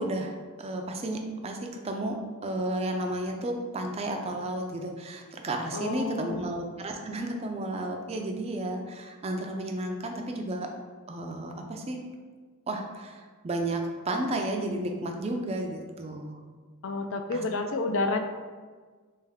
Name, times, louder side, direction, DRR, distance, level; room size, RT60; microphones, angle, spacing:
voice 1, 0.0-1.6 1.8-2.2 2.4-10.7 11.1-12.0 12.7-16.4 17.3-17.4, right 1 dB, 30° right, 3 dB, 0.4 m, -32 dB
voice 2, 5.7-6.5 16.8-18.2, left 3 dB, 60° left, 6 dB, 0.4 m, -30 dB
3.4 x 3.1 x 3.5 m, 1.5 s
head